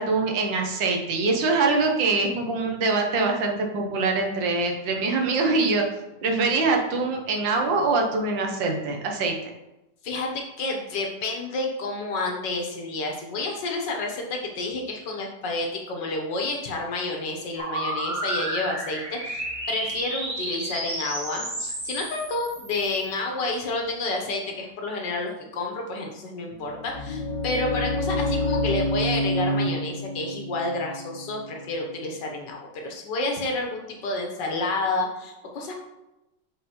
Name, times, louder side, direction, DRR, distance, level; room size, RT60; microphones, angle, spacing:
voice 1, 0.0-5.8 6.2-9.3, right 3 dB, 80° right, 2 dB, 1.7 m, -24 dB
voice 2, 10.0-35.7, left 2 dB, 70° left, 1 dB, 1.7 m, -30 dB
sound 1, 17.6-23.1, right 1 dB, 25° right, 0.7 m, -32 dB
sound 2, 26.6-32.4, left 1 dB, 85° left, 1.6 m, -28 dB
7.2 x 3.9 x 4.3 m, 0.96 s
omnidirectional pair, 2.0 m